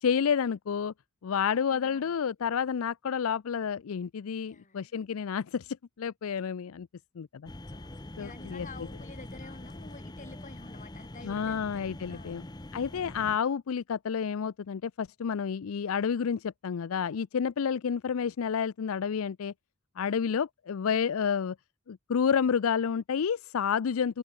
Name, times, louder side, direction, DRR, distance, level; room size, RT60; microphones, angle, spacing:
voice 1, 0.0-0.9 1.2-6.9 7.2-7.5 8.2-8.7 11.2-12.4 12.7-19.5 20.0-21.6 21.9-24.2, left 7 dB, 70° left, 0.4 m, -30 dB
voice 2, 1.7-2.2 4.5-5.0 7.7-11.6 12.1-12.4 20.1-20.3, left 3 dB, 35° left, 5.3 m, -50 dB
sound 1, 7.5-13.4, left 1 dB, 20° left, 0.8 m, -44 dB
head